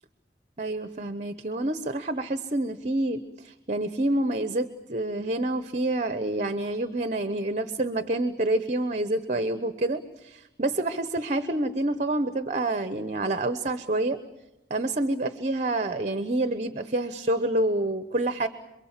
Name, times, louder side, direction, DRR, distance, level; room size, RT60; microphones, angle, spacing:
voice 1, 0.6-14.2 14.7-18.5, right 2 dB, 40° right, 10 dB, 1.0 m, -28 dB
27.5 x 23.0 x 7.5 m, 0.94 s
head